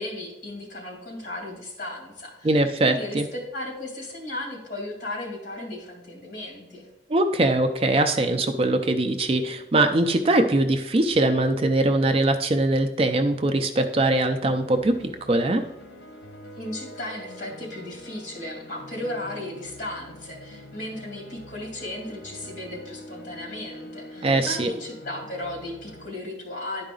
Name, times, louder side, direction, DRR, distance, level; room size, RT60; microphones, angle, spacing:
voice 1, 0.0-6.9 16.6-26.8, left 1 dB, 45° left, 0 dB, 2.4 m, -35 dB
voice 2, 2.4-3.3 7.1-15.6 24.2-24.7, right 2 dB, 30° right, 7 dB, 0.4 m, -22 dB
sound 1, 14.1-26.1, left 1 dB, 70° left, 0.9 m, -44 dB
10.5 x 4.8 x 3.8 m, 0.92 s
head